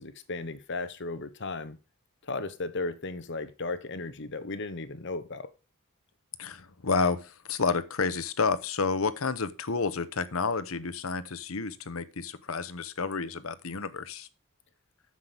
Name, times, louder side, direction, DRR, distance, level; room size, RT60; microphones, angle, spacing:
voice 1, 0.0-1.8 2.2-5.5, left 3 dB, 60° left, 1.1 m, -35 dB
voice 2, 6.4-14.3, left 4 dB, 85° left, 1.0 m, -30 dB
9.7 x 7.6 x 5.0 m
head